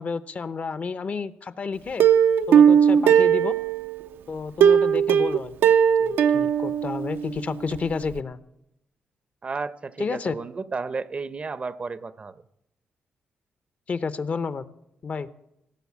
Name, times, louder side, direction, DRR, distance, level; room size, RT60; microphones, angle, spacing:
voice 1, 0.0-2.1 2.5-3.5 4.3-5.7 6.0-8.4 10.0-10.3 13.9-14.6 15.0-15.4, left 5 dB, 45° left, 14 dB, 0.7 m, -30 dB
Plucked string instrument, 2.0-4.0 4.6-7.4 7.7-7.8 8.2-8.3, right 8 dB, 90° right, 0.6 m, -18 dB
voice 2, 9.4-12.3, right 4 dB, 35° right, 15 dB, 0.6 m, -32 dB
17.0 x 6.7 x 8.3 m, 0.82 s
cardioid pair, 95°, 4 cm